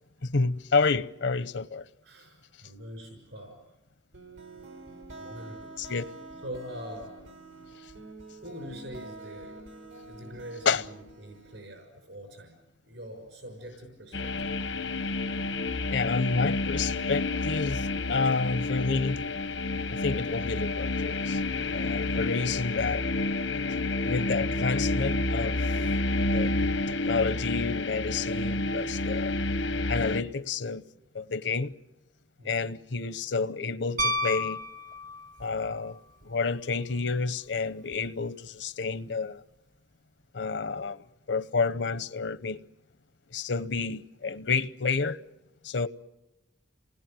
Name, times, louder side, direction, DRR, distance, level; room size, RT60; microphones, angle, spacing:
voice 1, 0.2-1.9 5.8-6.0 10.6-10.8 15.9-19.2 19.9-21.4 21.7-23.0 24.0-25.5 26.3-26.6 26.9-29.3 29.9-30.8 31.1-31.7 32.4-34.6 35.4-36.0 36.2-39.4 40.3-42.6 43.3-45.2 45.6-45.9, left 4 dB, 70° left, 0.8 m, -29 dB
voice 2, 2.0-3.6 5.1-6.0 6.4-7.1 8.4-9.6 10.1-12.6 12.9-14.5 32.4-32.7, equal, 75° right, 6.3 m, -43 dB
sound 1, 4.1-11.7, right 2 dB, 90° right, 4.1 m, -47 dB
sound 2, 14.1-30.2, left 2 dB, 90° left, 1.2 m, -29 dB
Piano, 34.0-35.6 37.9-38.0, left 1 dB, 45° right, 0.9 m, -30 dB
28.0 x 20.0 x 9.0 m
head